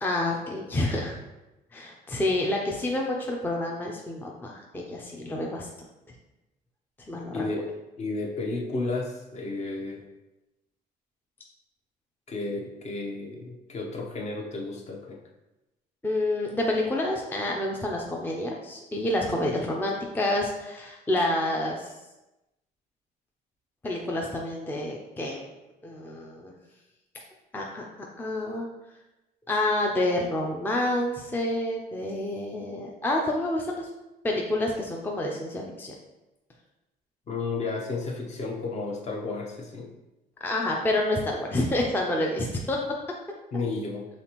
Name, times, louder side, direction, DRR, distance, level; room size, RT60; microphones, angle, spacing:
voice 1, 0.0-1.2 1.7-5.7 7.1-7.4 16.0-21.9 23.8-25.4 25.8-26.5 27.5-27.8 28.2-28.7 29.5-33.9 34.2-35.9 40.4-42.8, left 1 dB, 10° left, -1 dB, 0.5 m, -28 dB
voice 2, 7.3-7.7 8.0-10.0 12.3-15.2 37.3-39.9 43.5-44.0, left 3 dB, 40° left, 0 dB, 0.8 m, -32 dB
4.1 x 3.3 x 2.9 m, 0.99 s
cardioid pair, 110°, 17 cm